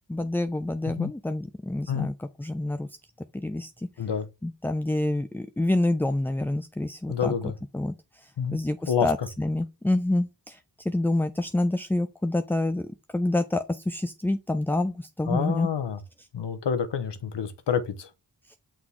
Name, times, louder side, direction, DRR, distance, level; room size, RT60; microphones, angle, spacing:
voice 1, 0.1-2.9 3.3-3.7 4.4-7.3 7.7-7.9 8.2-10.6 10.9-15.7 18.5-18.6, left 1 dB, 5° left, 0.3 m, -27 dB
voice 2, 7.1-7.5 8.4-8.6 8.9-9.1 15.3-16.0 16.3-18.1, left 7 dB, 75° left, 1.1 m, -28 dB
5.9 x 3.8 x 4.7 m
cardioid pair, 60°, 42 cm